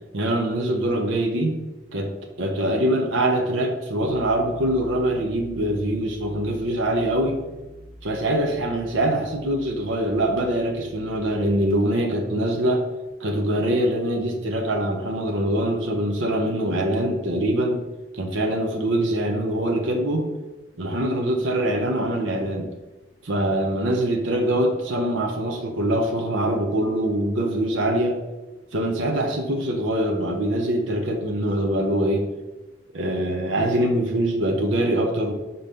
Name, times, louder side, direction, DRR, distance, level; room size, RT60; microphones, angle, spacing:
voice 1, 0.1-1.6 1.9-7.4 8.0-12.9 13.2-17.8 18.1-20.3 20.8-22.7 23.2-28.2 28.7-32.3 32.9-35.3, right 1 dB, 80° right, 3 dB, 0.8 m, -23 dB
sound 1, 4.0-11.5, left 1 dB, 5° left, 2.0 m, -46 dB
5.3 x 3.9 x 5.5 m, 1.1 s
head